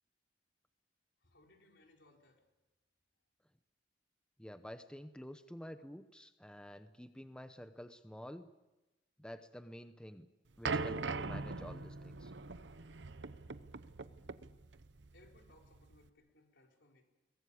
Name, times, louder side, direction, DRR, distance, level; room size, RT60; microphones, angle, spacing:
voice 1, 1.2-2.4 15.1-17.0, left 2 dB, 70° left, 1 dB, 4.5 m, -65 dB
voice 2, 4.4-8.5 9.2-10.3 10.6-12.3, equal, 5° left, 9 dB, 0.8 m, -49 dB
sound 1, 10.6-16.1, right 3 dB, 70° right, 0.9 m, -41 dB
23.0 x 19.0 x 8.6 m, 1.1 s
head